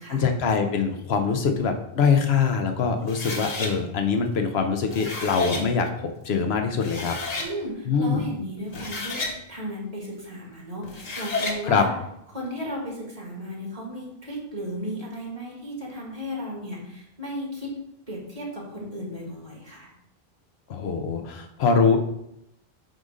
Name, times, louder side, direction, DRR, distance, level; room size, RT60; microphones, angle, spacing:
voice 1, 0.1-7.2 7.9-8.2 11.6-11.9 20.7-22.0, left 5 dB, 80° left, 6 dB, 0.9 m, -23 dB
sound 1, 3.1-3.7 4.7-5.6 6.4-6.5 6.8-7.5 8.6-9.3 10.8-11.6, left 3 dB, 40° left, 1.1 m, -31 dB
voice 2, 7.4-11.9 12.3-17.7 18.1-19.9, equal, 35° right, -4 dB, 1.9 m, -35 dB
7.7 x 2.6 x 4.9 m, 0.80 s
omnidirectional pair, 1.0 m